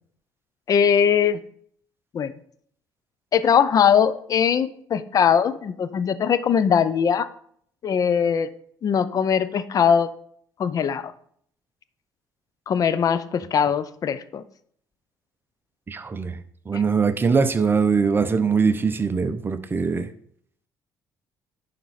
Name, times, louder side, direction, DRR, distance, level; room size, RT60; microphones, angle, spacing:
voice 1, 0.7-1.4 2.1-2.3 3.3-7.3 7.8-8.5 8.8-10.1 10.6-11.1 12.7-14.4 16.7-16.8, left 7 dB, 45° left, 0.6 m, -21 dB
voice 2, 15.9-16.3 16.7-20.1, right 5 dB, 25° right, 0.8 m, -22 dB
11.0 x 4.5 x 4.2 m
cardioid pair, 90°, 8 cm